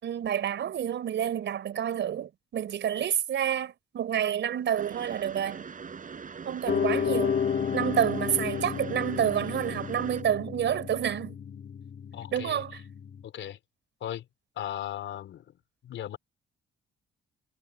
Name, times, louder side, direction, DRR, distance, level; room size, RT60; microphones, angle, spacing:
voice 1, 0.0-5.7 6.4-7.4 7.7-11.4 12.3-12.8, right 9 dB, 65° right, 4.6 m, -29 dB
sound 1, 4.8-10.2, right 6 dB, 40° right, 6.4 m, -42 dB
Piano, 6.7-13.2, left 7 dB, 50° left, 3.7 m, -32 dB
voice 2, 12.1-12.6 13.2-13.6 14.0-14.2 14.5-15.4 15.8-16.2, left 11 dB, 75° left, 4.6 m, -37 dB
cardioid pair, 90°, 20 cm